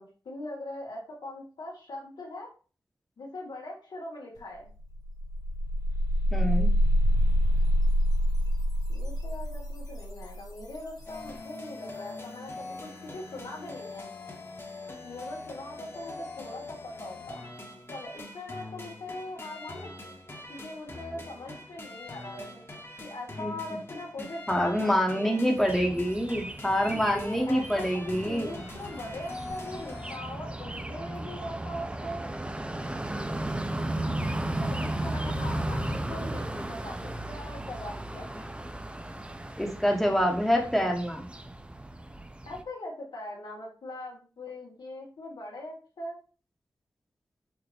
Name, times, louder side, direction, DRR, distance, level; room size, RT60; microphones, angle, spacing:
voice 1, 0.0-2.5 3.2-4.7 8.9-14.1 15.0-17.5 17.9-19.9 20.5-22.6 23.0-25.5 27.1-32.3 34.6-38.5 42.4-46.2, left 1 dB, 85° left, -1 dB, 1.6 m, -41 dB
sound 1, 4.4-4.5 4.8-11.6, equal, 60° left, 2.1 m, -26 dB
voice 2, 6.3-6.7 23.4-23.5 24.5-28.6 39.6-41.3, equal, 5° left, 1 dB, 1.2 m, -26 dB
sound 2, 11.1-30.2, left 2 dB, 35° left, 1.3 m, -43 dB
sound 3, 25.6-42.6, right 1 dB, 15° right, 0.5 m, -35 dB
6.1 x 2.6 x 3.3 m, 0.37 s
cardioid pair, 60°, 7 cm